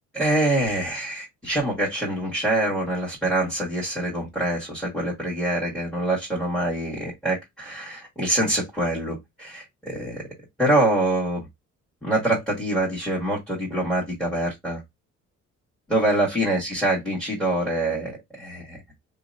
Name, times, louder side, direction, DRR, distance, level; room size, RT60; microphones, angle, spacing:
voice 1, 0.1-10.2 10.6-11.5 12.0-14.8 15.9-18.8, right 1 dB, ahead, 1.4 m, -25 dB
2.8 x 2.1 x 2.5 m
cardioid pair, 90°, 30 cm